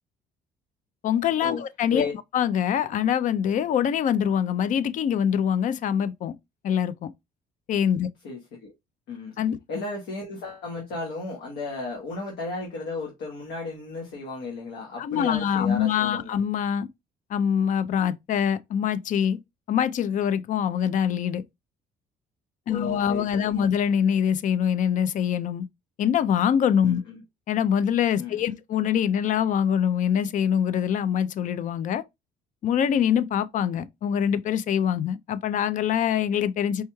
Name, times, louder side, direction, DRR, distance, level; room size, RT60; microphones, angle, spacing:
voice 1, 1.0-2.1 2.3-6.3 6.6-7.1 7.7-8.1 9.4-9.6 15.0-16.9 17.3-19.4 19.7-21.4 22.7-25.7 26.0-27.0 27.5-32.0 32.6-36.8, left 8 dB, 50° left, 0.4 m, -24 dB
voice 2, 8.2-8.7 9.1-9.4 9.7-16.3 22.7-23.7 26.8-27.2 28.2-28.4, left 3 dB, 85° left, 1.2 m, -34 dB
4.4 x 3.0 x 2.2 m
cardioid pair, 110°, 17 cm